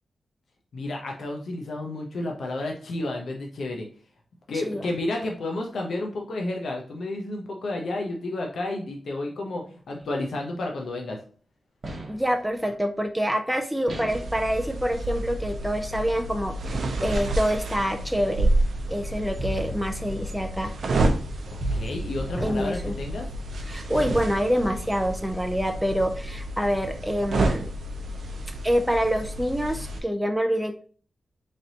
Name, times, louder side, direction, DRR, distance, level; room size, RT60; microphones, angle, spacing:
voice 1, 0.7-3.9 4.5-11.2 21.5-23.3, left 2 dB, 75° left, 1 dB, 0.6 m, -31 dB
sound 1, 11.8-12.4 13.9-14.4 17.2-17.8 19.4-22.8, right 2 dB, 45° right, 0.9 m, -36 dB
voice 2, 12.1-18.5 18.9-20.7 22.4-23.0 23.7-27.7 28.6-30.9, equal, 5° right, 5 dB, 0.3 m, -26 dB
sound 2, 14.1-30.0, right 1 dB, 70° right, 0.6 m, -30 dB
3.8 x 3.2 x 2.7 m, 0.43 s
wide cardioid pair, 120°, 0 cm